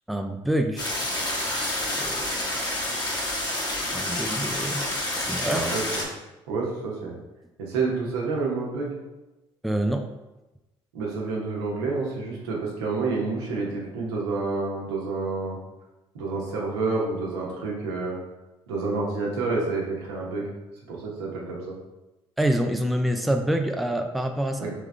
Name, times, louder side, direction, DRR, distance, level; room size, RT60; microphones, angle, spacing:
voice 1, 0.1-0.9 2.0-2.3 3.9-4.8 5.2-5.7 9.6-10.1 22.4-24.7, right 1 dB, ahead, 5 dB, 0.4 m, -26 dB
sound 1, 0.8-6.0, left 1 dB, 30° left, 1.4 m, -28 dB
voice 2, 5.5-6.0 6.5-7.1 7.6-9.0 10.9-15.6 16.1-18.2 18.7-20.5 20.9-21.7 24.6-24.7, right 3 dB, 80° right, -3 dB, 1.0 m, -29 dB
3.5 x 3.5 x 3.3 m, 1.0 s
hypercardioid pair, 55°, 13 cm